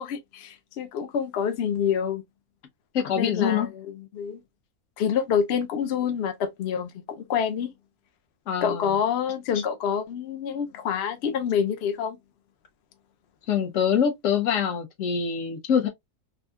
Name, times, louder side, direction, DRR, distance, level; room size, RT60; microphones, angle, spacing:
voice 1, 0.0-2.2 3.2-3.9 4.1-4.4 5.0-7.7 8.6-12.2, left 7 dB, 80° left, 0.5 m, -27 dB
voice 2, 2.9-3.7 8.5-9.0 9.5-9.6 13.5-15.9, left 7 dB, 60° left, 1.0 m, -25 dB
3.4 x 2.6 x 2.2 m
omnidirectional pair, 1.6 m